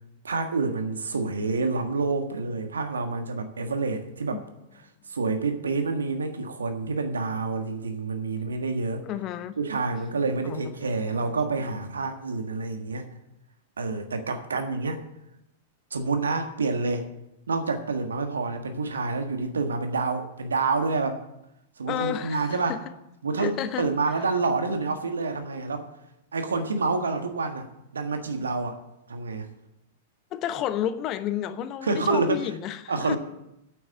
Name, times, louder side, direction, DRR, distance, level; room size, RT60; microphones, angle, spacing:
voice 1, 0.2-4.4 5.1-9.1 9.6-13.1 13.8-15.0 15.9-17.1 17.5-21.2 21.8-22.8 23.2-25.9 26.3-27.7 27.9-28.8 29.1-29.5 31.8-32.5 32.9-33.2, right 3 dB, 75° right, 7 dB, 1.5 m, -28 dB
voice 2, 9.0-9.6 10.4-11.3 21.9-22.8 23.4-23.9 30.3-33.2, left 11 dB, 35° left, 12 dB, 0.9 m, -31 dB
8.7 x 8.5 x 8.6 m, 0.85 s
figure-of-eight pair, 100°, 0 cm